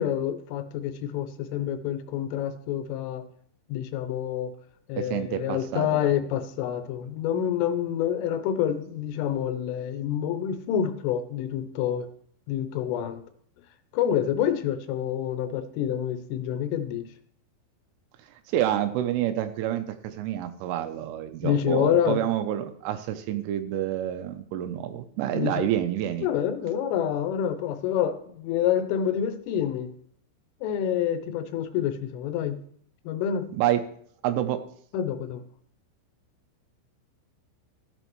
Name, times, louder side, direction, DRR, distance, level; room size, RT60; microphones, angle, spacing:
voice 1, 0.0-3.3 3.7-4.5 4.9-12.1 12.5-13.2 13.9-17.1 21.4-22.2 25.3-25.5 26.2-29.9 30.6-32.6 33.1-33.5 34.9-35.4, left 9 dB, 80° left, 8 dB, 3.2 m, -27 dB
voice 2, 5.0-6.0 18.5-26.3 33.5-33.8 34.2-34.6, right 12 dB, 80° right, 9 dB, 3.0 m, -28 dB
14.5 x 7.9 x 3.1 m, 0.62 s
omnidirectional pair, 5.9 m